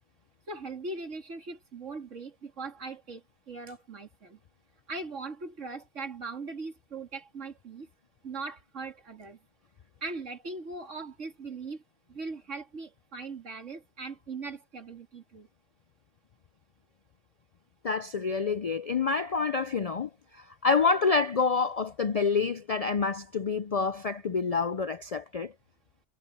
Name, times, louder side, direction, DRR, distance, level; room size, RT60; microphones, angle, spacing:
voice 1, 0.5-4.4 4.9-7.9 8.2-9.4 10.0-11.8 12.1-15.5, right 3 dB, 85° right, 3.0 m, -40 dB
voice 2, 17.8-25.5, left 4 dB, 60° left, 0.4 m, -27 dB
omnidirectional pair, 1.2 m